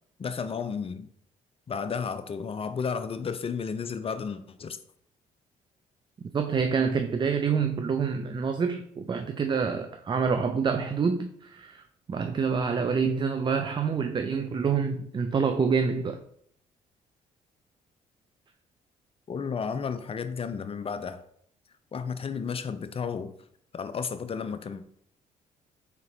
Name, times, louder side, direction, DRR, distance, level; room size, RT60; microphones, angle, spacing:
voice 1, 0.2-1.1 1.7-4.8 19.3-21.2 21.9-23.3 23.7-24.9, left 6 dB, 30° left, 12 dB, 0.5 m, -33 dB
voice 2, 6.3-16.2, right 5 dB, 25° right, 7 dB, 0.4 m, -27 dB
4.2 x 3.9 x 2.7 m, 0.67 s
hypercardioid pair, 45°, 18 cm